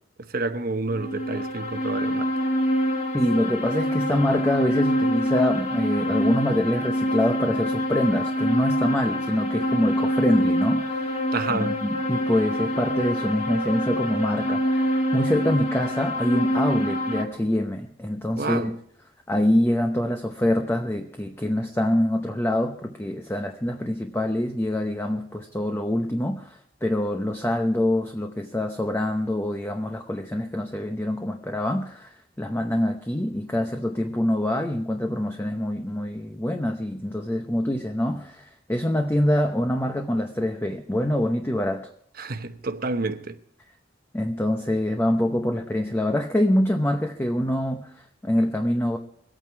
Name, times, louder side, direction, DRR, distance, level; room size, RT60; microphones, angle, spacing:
voice 1, 0.3-2.3 11.3-11.7 18.4-18.7 42.2-43.4, right 3 dB, 50° right, 1.0 m, -29 dB
sound 1, 0.9-17.2, equal, 35° left, 1.8 m, -25 dB
voice 2, 3.1-11.2 11.5-18.7 19.3-41.9 44.1-49.0, left 1 dB, 10° left, 0.8 m, -25 dB
22.5 x 9.0 x 4.6 m
head